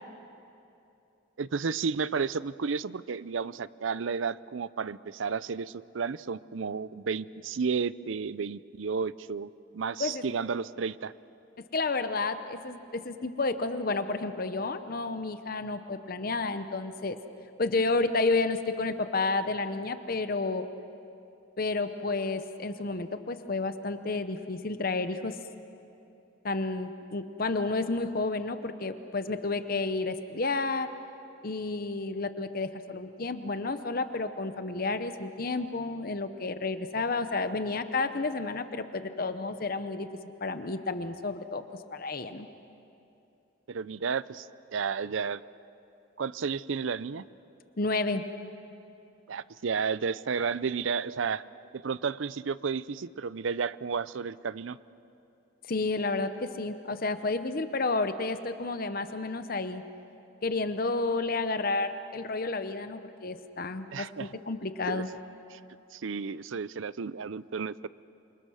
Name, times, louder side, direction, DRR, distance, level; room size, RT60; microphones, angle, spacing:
voice 1, 1.4-11.1 43.7-44.5 44.7-45.4 46.2-47.2 49.3-51.4 51.7-54.8 63.9-64.3 64.9-65.0 65.5-65.6 65.9-67.9, right 5 dB, 80° right, 18 dB, 0.5 m, -32 dB
voice 2, 11.7-17.2 17.6-20.7 21.6-25.4 26.4-30.9 31.4-40.1 40.4-41.6 41.9-42.5 47.8-48.2 55.7-59.8 60.4-65.1, left 3 dB, 50° left, 10 dB, 0.9 m, -31 dB
27.5 x 25.5 x 6.4 m, 2.8 s
head